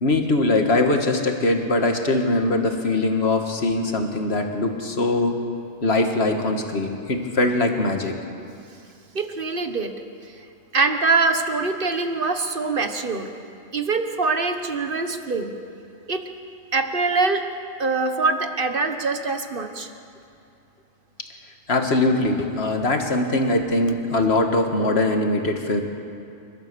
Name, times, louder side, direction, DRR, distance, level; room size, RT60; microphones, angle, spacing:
voice 1, 0.0-5.4 5.8-8.2 21.7-25.8, left 2 dB, 50° left, 4 dB, 2.0 m, -21 dB
voice 2, 9.1-9.9 10.3-10.4 10.7-13.3 13.7-15.6 16.1-16.2 16.7-17.4 17.8-19.9, right 3 dB, 45° right, 7 dB, 1.4 m, -23 dB
30.0 x 13.0 x 6.9 m, 2.6 s
omnidirectional pair, 1.4 m